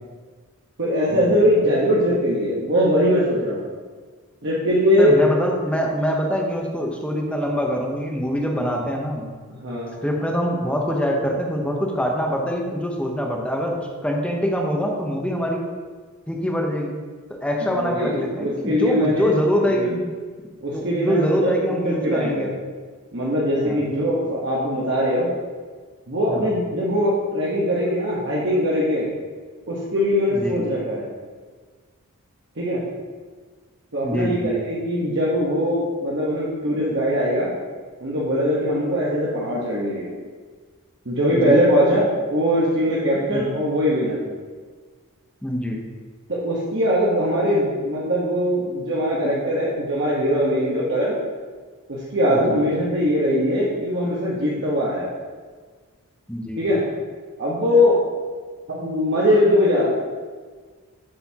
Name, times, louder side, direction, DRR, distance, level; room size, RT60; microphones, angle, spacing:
voice 1, 0.8-3.6 4.4-5.2 9.6-9.9 17.6-19.3 19.8-19.9 20.6-21.5 21.8-22.5 23.1-25.3 26.1-29.1 29.7-31.1 32.6-32.8 33.9-37.5 38.0-40.1 41.0-44.2 46.3-51.2 51.9-55.1 56.6-56.8 57.4-58.0 58.7-59.9, equal, 55° right, -7 dB, 1.2 m, -21 dB
voice 2, 5.0-9.2 10.0-15.6 16.3-17.0 17.4-20.1 20.7-22.5 23.6-23.8 26.3-26.5 30.3-30.6 34.0-34.5 41.2-41.6 43.3-43.5 45.4-45.8 52.3-52.6 56.3-56.6, equal, 5° left, 0 dB, 0.9 m, -24 dB
7.7 x 6.8 x 2.9 m, 1.5 s
head